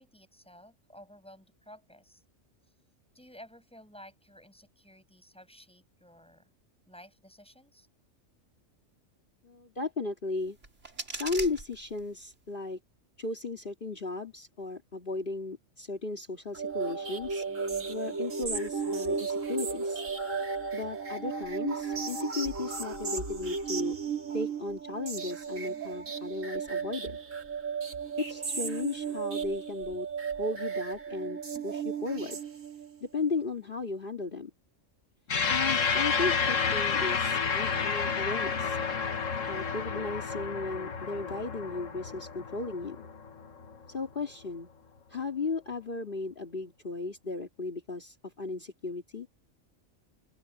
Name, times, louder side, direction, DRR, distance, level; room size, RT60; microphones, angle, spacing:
voice 1, 0.0-2.2 3.1-6.5 6.9-7.9, equal, 5° left, 7.3 m, -53 dB
voice 2, 9.4-10.6 11.1-12.8 13.2-17.4 17.9-20.0 20.7-24.0 24.3-27.2 28.2-30.1 30.4-32.4 33.0-34.5 35.5-38.8 39.5-43.1 43.9-44.7 45.1-49.3, left 3 dB, 40° left, 2.7 m, -35 dB
sound 1, 10.4-12.4, right 2 dB, 65° right, 3.8 m, -41 dB
sound 2, 16.5-33.0, right 5 dB, 80° right, 2.8 m, -34 dB
sound 3, 35.3-44.0, left 5 dB, 75° left, 1.8 m, -30 dB
open air
omnidirectional pair, 1.3 m